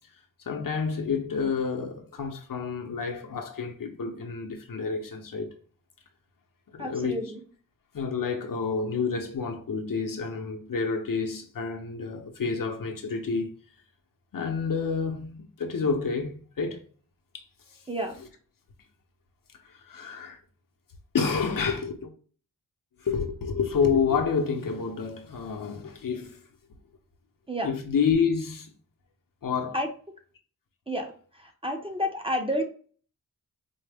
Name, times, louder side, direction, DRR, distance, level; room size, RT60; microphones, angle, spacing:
voice 1, 0.5-5.5 6.7-7.3 7.9-13.5 14.3-16.8 17.3-17.4 17.7-17.8 18.1-18.3 19.6-20.4 21.1-22.1 23.0-26.4 27.6-28.7 29.4-29.8, left 5 dB, 65° left, 0.8 m, -29 dB
voice 2, 6.8-7.4 17.9-18.2 27.5-27.7 29.7-29.9 30.9-31.1 31.6-32.6, equal, 15° right, 0.6 m, -29 dB
4.4 x 2.1 x 3.4 m
wide cardioid pair, 120°, 36 cm